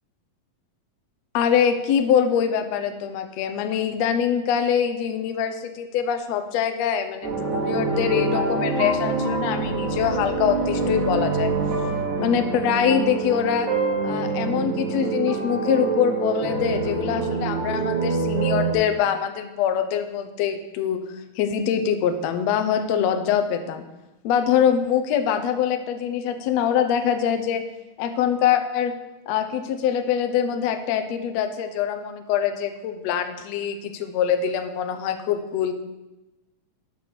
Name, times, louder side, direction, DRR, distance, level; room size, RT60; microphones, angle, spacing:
voice 1, 1.3-11.5 12.2-13.7 14.0-21.0 21.4-23.8 24.2-27.6 28.0-28.9 29.3-35.7, left 8 dB, 85° left, 7 dB, 1.5 m, -24 dB
sound 1, 7.2-18.7, right 3 dB, 60° right, 2.9 m, -25 dB
8.6 x 6.3 x 6.8 m, 1.0 s
omnidirectional pair, 4.0 m